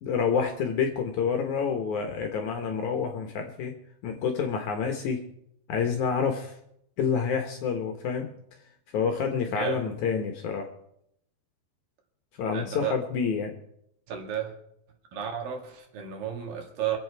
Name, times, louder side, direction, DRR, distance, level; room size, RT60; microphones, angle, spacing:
voice 1, 0.0-3.7 4.0-5.2 5.7-6.5 7.0-8.3 8.9-10.7 12.4-13.5, left 6 dB, 65° left, 4 dB, 2.1 m, -28 dB
voice 2, 9.4-9.9 12.5-13.0 14.1-14.5 15.1-17.0, right 9 dB, 65° right, 3 dB, 3.4 m, -33 dB
24.5 x 8.3 x 4.6 m, 0.74 s
omnidirectional pair, 4.5 m